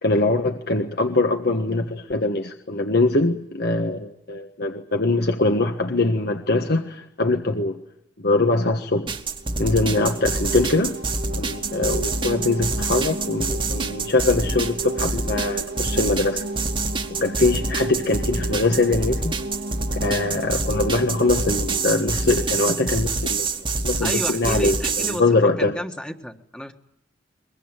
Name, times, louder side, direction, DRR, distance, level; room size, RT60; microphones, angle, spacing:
voice 1, 0.0-7.8 8.2-9.1 9.6-10.9 11.4-16.4 17.1-19.3 20.0-23.5 23.8-25.7, left 2 dB, 60° left, 5 dB, 1.4 m, -22 dB
sound 1, 9.1-25.2, right 3 dB, 30° right, 1.5 m, -27 dB
sound 2, 9.3-24.0, right 2 dB, 55° right, 1.6 m, -34 dB
voice 2, 24.0-26.7, equal, 5° left, 4 dB, 1.6 m, -31 dB
22.5 x 22.0 x 9.1 m, 0.79 s
head